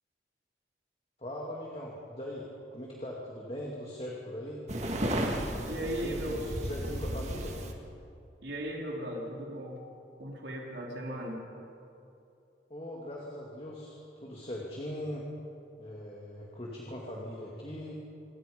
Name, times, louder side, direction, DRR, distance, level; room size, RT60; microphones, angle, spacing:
voice 1, 1.2-4.6 5.6-7.6 12.7-15.3 15.8-17.9, left 1 dB, 30° left, -3 dB, 2.5 m, -40 dB
sound 1, 4.7-7.7, right 1 dB, 40° right, 2.2 m, -33 dB
voice 2, 5.7-6.4 8.4-9.8 10.2-11.4, right 1 dB, 80° right, -2 dB, 3.6 m, -37 dB
26.5 x 23.5 x 5.4 m, 2.7 s
head